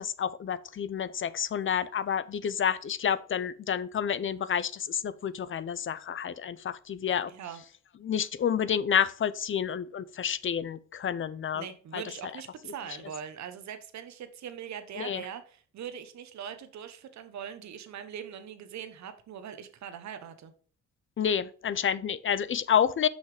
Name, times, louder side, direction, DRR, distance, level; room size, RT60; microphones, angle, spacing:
voice 1, 0.0-7.3 8.0-11.6 11.9-12.0 15.0-15.2 21.2-23.1, left 8 dB, 40° left, 0.7 m, -29 dB
voice 2, 7.3-7.6 11.5-20.5, right 8 dB, 65° right, 1.2 m, -41 dB
6.3 x 5.7 x 5.0 m
cardioid pair, 90°, 30 cm